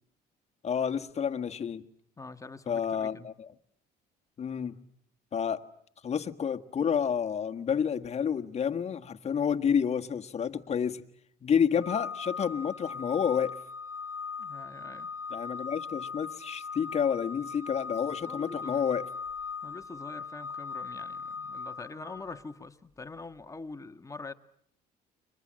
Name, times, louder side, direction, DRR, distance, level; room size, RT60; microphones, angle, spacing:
voice 1, 0.6-1.8 2.7-3.5 4.4-4.7 5.3-5.6 6.0-11.0 11.4-13.6 15.3-19.1, left 7 dB, 40° left, 1.6 m, -29 dB
voice 2, 2.2-3.3 14.4-15.1 18.2-18.8 19.6-24.3, left 3 dB, 20° left, 1.5 m, -44 dB
Organ, 11.8-22.6, left 5 dB, 15° right, 3.7 m, -39 dB
30.0 x 24.5 x 7.6 m
cardioid pair, 110°, 17 cm